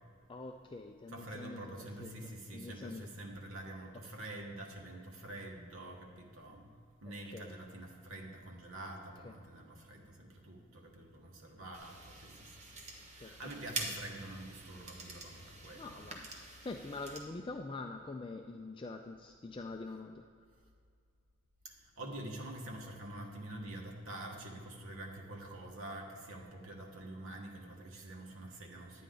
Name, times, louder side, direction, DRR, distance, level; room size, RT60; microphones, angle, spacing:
voice 1, 0.3-3.1 7.1-7.5 9.2-9.3 13.2-13.5 15.8-20.2, left 3 dB, 25° left, 4 dB, 0.3 m, -45 dB
voice 2, 1.1-6.7 7.0-12.5 13.1-16.1 21.6-29.0, right 1 dB, 70° right, 1 dB, 1.4 m, -47 dB
sound 1, 11.7-17.2, right 2 dB, 30° right, 1.1 m, -46 dB
9.9 x 9.3 x 3.9 m, 2.2 s
head